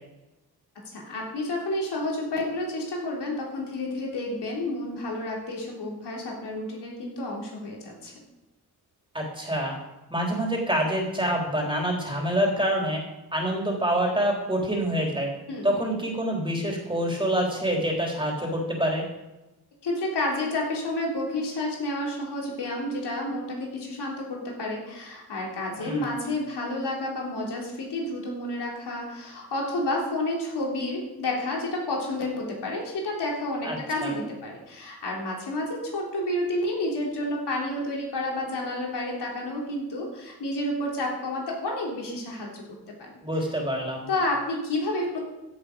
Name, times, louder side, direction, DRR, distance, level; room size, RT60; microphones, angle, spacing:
voice 1, 0.9-8.1 15.5-15.7 19.8-42.6 43.0-43.1 44.1-45.2, left 1 dB, 90° left, -2 dB, 3.5 m, -30 dB
voice 2, 9.1-9.8 10.1-13.0 13.3-15.3 15.6-19.0 25.8-26.1 33.6-34.1 43.2-44.1, equal, 10° right, -1 dB, 3.6 m, -26 dB
15.5 x 7.3 x 5.1 m, 1.0 s
cardioid pair, 90°, 39 cm